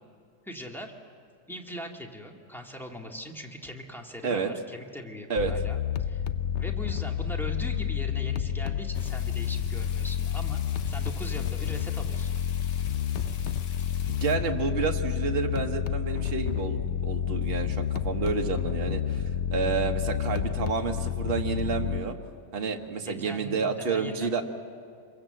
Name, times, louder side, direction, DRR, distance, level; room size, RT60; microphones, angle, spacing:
voice 1, 0.4-0.9 1.5-6.2 6.6-12.3 23.0-24.4, equal, ahead, 1 dB, 1.9 m, -40 dB
sound 1, 5.4-22.0, left 9 dB, 55° left, 0.8 m, -30 dB
sound 2, 8.9-14.4, left 7 dB, 85° left, 1.8 m, -48 dB
voice 2, 14.1-19.2 19.5-22.2 22.5-24.4, right 5 dB, 35° right, 3 dB, 1.5 m, -30 dB
26.5 x 22.5 x 7.8 m, 2.4 s
omnidirectional pair, 1.9 m